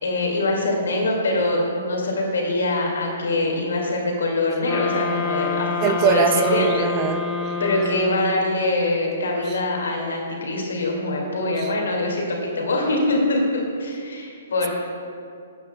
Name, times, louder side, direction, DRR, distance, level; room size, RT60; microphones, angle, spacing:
voice 1, 0.0-6.2 6.5-6.7 7.6-14.7, left 2 dB, 65° left, 0 dB, 2.2 m, -23 dB
sound 1, 4.7-8.5, left 6 dB, 25° left, 0.8 m, -27 dB
voice 2, 5.8-7.2 9.5-9.6 11.6-11.7, right 6 dB, 30° right, 8 dB, 0.5 m, -22 dB
15.0 x 9.3 x 2.3 m, 2.4 s
figure-of-eight pair, 120°, 0 cm